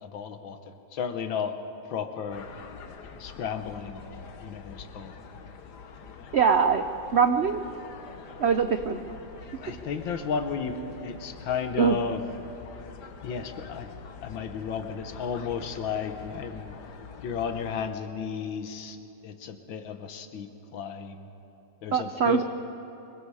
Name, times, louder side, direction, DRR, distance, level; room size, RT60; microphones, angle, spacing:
voice 1, 0.0-1.5 1.9-2.5 3.2-5.1 9.6-12.2 13.2-13.9 14.2-16.8 17.2-19.0 19.2-21.3 21.8-22.5, left 6 dB, 85° left, 8 dB, 1.9 m, -33 dB
sound 1, 2.3-17.9, left 5 dB, 65° left, 1.6 m, -45 dB
voice 2, 6.3-6.8 7.1-7.6 8.4-9.0 11.8-12.0 21.9-22.5, right 6 dB, 90° right, 8 dB, 0.5 m, -22 dB
24.5 x 22.0 x 4.9 m, 2.9 s
omnidirectional pair, 2.0 m